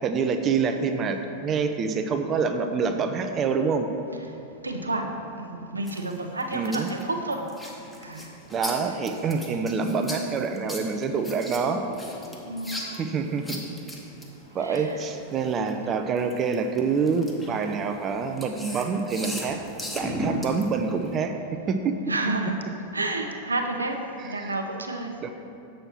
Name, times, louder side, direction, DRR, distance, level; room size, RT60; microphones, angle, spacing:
voice 1, 0.0-3.9 6.5-6.9 8.5-11.8 13.0-13.6 14.5-19.6 19.9-21.4 21.7-22.0 24.2-24.6 25.2-25.3, right 5 dB, 30° right, 7 dB, 0.5 m, -26 dB
voice 2, 4.6-5.1 5.4-7.4 8.0-8.2 12.4-13.0 14.6-14.8 22.1-22.5 22.9-23.9 24.2-25.1, right 2 dB, 80° right, 4 dB, 0.7 m, -30 dB
sound 1, 5.9-15.7 16.2-21.2, equal, 5° left, 1.0 m, -37 dB
7.7 x 6.3 x 4.4 m, 2.7 s
figure-of-eight pair, 90°, 0 cm